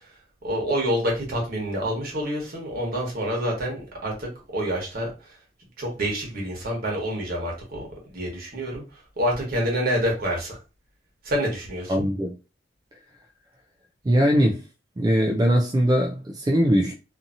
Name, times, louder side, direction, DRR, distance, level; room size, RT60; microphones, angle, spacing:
voice 1, 0.4-5.1 5.8-8.8 9.2-10.6 11.2-12.1, equal, 55° right, 1.2 m, -27 dB
voice 2, 11.9-12.4 14.0-14.6 15.0-16.9, equal, 20° right, 0.3 m, -21 dB
2.7 x 2.6 x 2.5 m
head